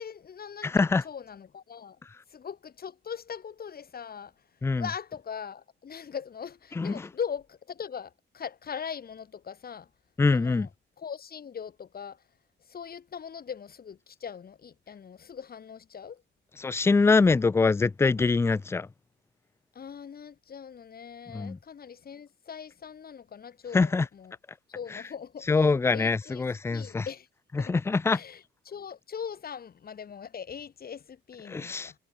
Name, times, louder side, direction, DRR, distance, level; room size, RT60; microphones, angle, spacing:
voice 1, 0.0-2.0 2.3-4.3 4.8-9.9 10.3-10.7 11.0-12.2 12.7-16.2 19.8-24.3 24.7-25.7 25.9-26.4 26.7-27.3 27.6-27.7 28.1-32.0, left 7 dB, 50° left, 6.9 m, -40 dB
voice 2, 0.6-1.0 4.6-4.9 6.8-7.1 10.2-10.7 16.6-18.9 21.3-21.6 23.7-24.1 24.9-25.0 25.5-27.0 27.6-28.2 31.5-31.9, left 4 dB, 15° left, 0.3 m, -24 dB
cardioid pair, 90°, 20 cm